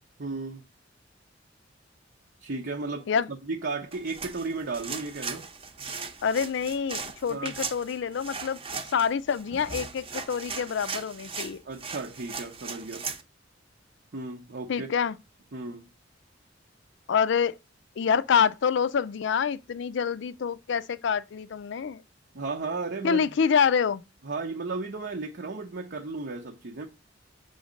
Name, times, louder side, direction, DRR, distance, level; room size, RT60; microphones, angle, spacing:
voice 1, 0.2-0.6 2.4-3.1 3.5-5.5 7.3-7.5 11.6-13.1 14.1-14.9 15.5-15.8 22.3-23.2 24.2-26.9, right 3 dB, 60° right, 0.8 m, -34 dB
sound 1, 3.9-13.2, right 5 dB, 30° right, 0.8 m, -38 dB
voice 2, 6.2-8.6 8.9-11.6 14.7-15.2 17.1-17.6 18.0-22.0 23.0-24.0, left 6 dB, 65° left, 0.4 m, -26 dB
6.4 x 3.9 x 5.1 m
head